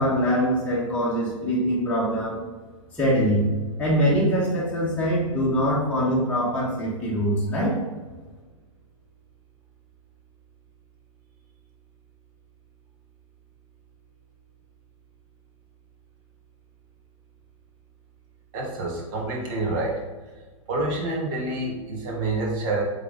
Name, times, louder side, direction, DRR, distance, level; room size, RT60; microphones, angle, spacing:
voice 1, 0.0-2.4 2.9-3.5 3.8-7.8, equal, 5° left, -8 dB, 1.5 m, -23 dB
voice 2, 18.5-20.0 20.7-22.8, right 2 dB, 40° right, -1 dB, 1.7 m, -27 dB
8.2 x 3.6 x 4.0 m, 1.3 s
figure-of-eight pair, 110°, 18 cm